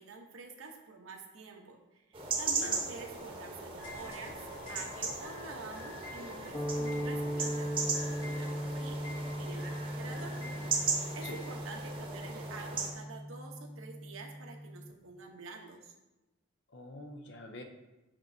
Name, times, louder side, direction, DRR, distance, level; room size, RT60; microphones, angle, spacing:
voice 1, 0.0-4.4 4.7-9.0 9.4-10.4 11.1-15.9, right 3 dB, 85° right, 2 dB, 0.9 m, -48 dB
sound 1, 2.1-12.9, right 4 dB, 25° right, 0.9 m, -38 dB
sound 2, 3.8-11.5, left 2 dB, 75° left, 2.1 m, -49 dB
sound 3, 6.5-14.9, equal, 25° left, 0.9 m, -38 dB
voice 2, 10.0-10.7 11.2-11.4 16.7-17.6, left 2 dB, 55° left, 4 dB, 0.6 m, -47 dB
6.6 x 6.0 x 2.7 m, 1.1 s
head